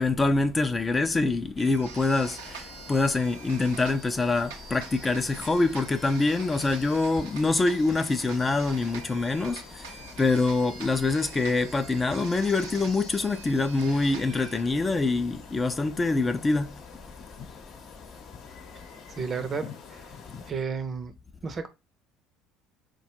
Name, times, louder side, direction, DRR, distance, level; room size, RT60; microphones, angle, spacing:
voice 1, 0.0-16.8, left 3 dB, 25° left, 0.4 m, -25 dB
sound 1, 1.6-14.6, right 6 dB, 90° right, 0.6 m, -45 dB
sound 2, 2.2-20.5, left 5 dB, 60° left, 0.8 m, -47 dB
voice 2, 19.2-20.1 20.5-21.1 21.4-21.7, right 5 dB, 40° right, 0.6 m, -32 dB
3.9 x 2.2 x 3.0 m
hypercardioid pair, 80°, 0 cm